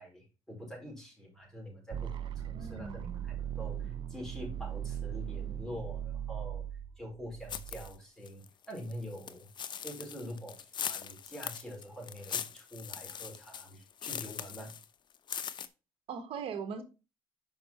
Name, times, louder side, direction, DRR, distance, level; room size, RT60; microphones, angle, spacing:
voice 1, 0.0-6.6 7.0-9.5 9.8-14.7, equal, 5° left, -1 dB, 4.8 m, -45 dB
sound 1, 1.9-7.9, right 9 dB, 50° right, 0.6 m, -39 dB
voice 2, 2.5-3.3 16.1-16.8, right 6 dB, 65° right, 7 dB, 1.5 m, -40 dB
sound 2, 7.5-7.9 8.3-14.9 15.2-15.7, left 8 dB, 45° left, 0.7 m, -40 dB
5.9 x 5.2 x 4.5 m, 0.30 s
supercardioid pair, 80°, 10 cm